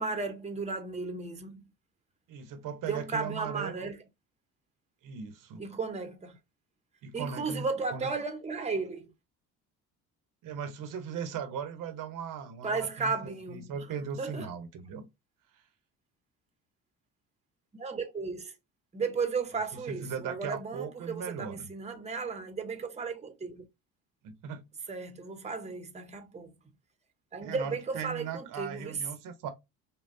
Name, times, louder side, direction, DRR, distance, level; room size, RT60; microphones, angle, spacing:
voice 1, 0.0-1.6 2.9-4.0 5.6-6.4 7.1-9.1 12.6-13.7 14.2-14.5 17.7-18.5 18.9-23.7 24.9-26.5 27.3-29.0, right 4 dB, 20° right, 0.9 m, -34 dB
voice 2, 2.3-3.9 5.0-5.7 7.0-7.6 7.9-8.1 10.4-15.0 15.5-15.6 20.0-21.7 24.2-24.6 27.4-29.5, right 7 dB, 70° right, 1.0 m, -38 dB
5.5 x 2.3 x 2.6 m
cardioid pair, 95°, 33 cm